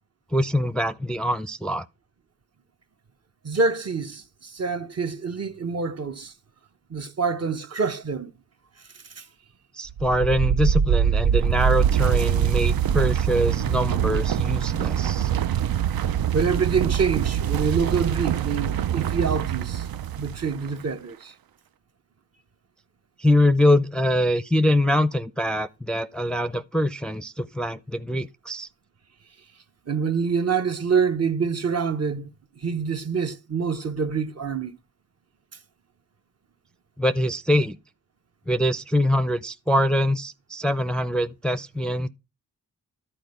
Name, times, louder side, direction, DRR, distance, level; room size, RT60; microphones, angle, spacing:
voice 1, 0.3-1.9 9.7-15.3 23.2-28.7 37.0-37.8 38.5-42.1, left 1 dB, 5° left, 0.4 m, -23 dB
voice 2, 3.4-6.3 6.9-8.3 9.2-9.3 16.3-19.9 20.2-21.3 29.9-34.8, right 5 dB, 45° right, 0.8 m, -26 dB
sound 1, 9.9-20.7, right 9 dB, 80° right, 0.5 m, -24 dB
11.5 x 4.3 x 5.3 m
cardioid pair, 55°, 35 cm